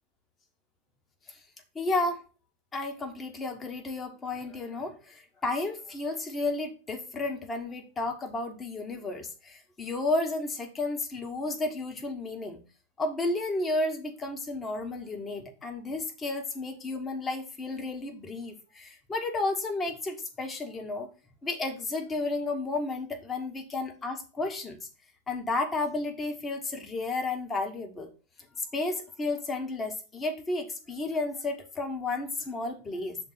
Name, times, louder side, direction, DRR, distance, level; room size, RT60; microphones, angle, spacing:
voice 1, 1.7-2.2 2.7-12.6 13.0-21.1 21.4-24.9 25.3-28.1 28.6-33.2, left 2 dB, 15° left, 4 dB, 1.4 m, -32 dB
6.7 x 3.8 x 5.7 m, 0.33 s
figure-of-eight pair, 90°, 0 cm